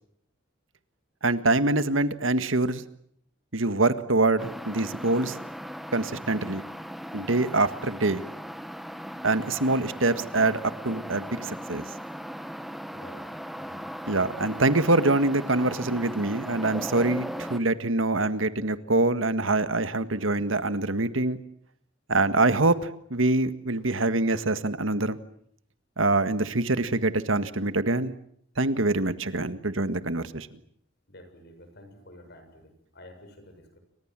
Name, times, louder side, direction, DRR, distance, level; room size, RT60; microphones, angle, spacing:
voice 1, 1.2-2.8 3.5-5.4 5.9-6.6 7.1-8.2 9.2-10.6 10.8-11.8 14.1-21.4 22.1-25.2 26.0-28.1 28.6-30.5, right 2 dB, 80° right, 11 dB, 1.7 m, -25 dB
sound 1, 4.4-17.6, equal, ahead, 1.3 m, -38 dB
voice 2, 12.9-13.3 13.6-13.9 31.1-33.8, left 1 dB, 55° left, 7 dB, 7.1 m, -50 dB
30.0 x 24.5 x 7.6 m, 0.68 s
head